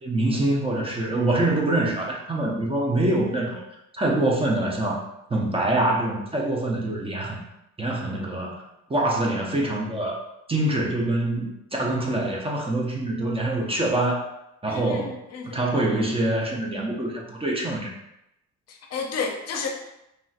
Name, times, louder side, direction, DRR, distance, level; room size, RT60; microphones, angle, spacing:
voice 1, 0.0-3.6 3.9-5.0 5.3-7.4 7.8-8.6 8.9-10.2 10.5-14.3 14.6-15.2 15.4-17.9, right 1 dB, 20° right, -2 dB, 0.5 m, -25 dB
voice 2, 14.7-15.6 18.7-19.7, left 5 dB, 55° left, 2 dB, 0.6 m, -32 dB
3.2 x 2.5 x 2.4 m, 0.86 s
cardioid pair, 90°, 30 cm